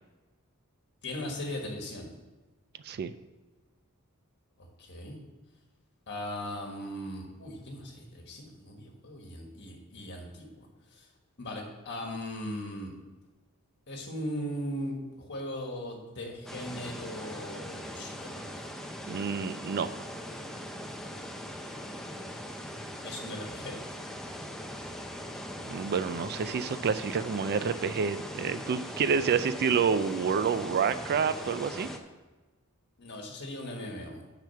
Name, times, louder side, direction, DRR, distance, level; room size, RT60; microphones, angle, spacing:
voice 1, 1.0-2.1 4.8-5.2 6.1-10.7 10.9-11.0 11.4-12.9 13.9-18.4 23.0-23.7 33.0-34.3, left 1 dB, 55° left, 1 dB, 1.5 m, -38 dB
sound 1, 16.5-32.0, equal, ahead, 0.5 m, -40 dB
voice 2, 19.1-19.9 25.6-31.9, right 6 dB, 45° right, 13 dB, 0.3 m, -28 dB
6.4 x 5.0 x 6.9 m, 1.2 s
head